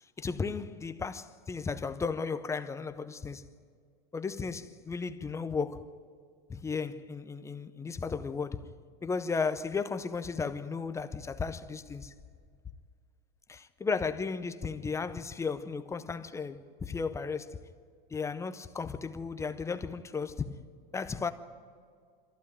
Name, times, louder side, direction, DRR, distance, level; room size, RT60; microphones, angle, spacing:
voice 1, 0.2-3.4 4.1-6.0 6.5-8.7 9.0-12.1 13.5-17.6 18.1-20.6 20.9-21.3, left 5 dB, 10° left, 0.6 m, -35 dB
23.5 x 15.0 x 9.2 m
supercardioid pair, 145°, 30 cm